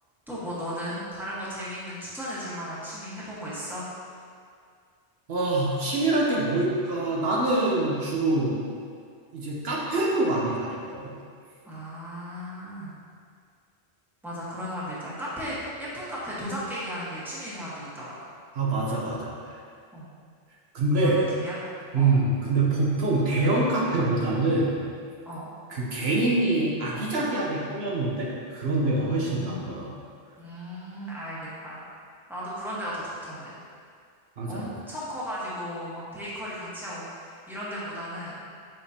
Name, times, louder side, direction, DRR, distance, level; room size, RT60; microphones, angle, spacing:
voice 1, 0.3-3.8 11.6-12.9 14.2-18.2 19.9-20.1 20.9-21.6 22.0-22.1 25.2-25.5 28.8-29.7 30.4-31.8 32.3-33.6 34.5-38.3, equal, ahead, -9 dB, 1.3 m, -36 dB
voice 2, 5.3-8.6 9.3-11.1 18.5-19.6 20.7-21.2 21.9-24.7 25.7-29.9 34.4-34.6, right 2 dB, 70° right, -4 dB, 1.1 m, -25 dB
7.4 x 5.1 x 2.9 m, 2.2 s
omnidirectional pair, 1.1 m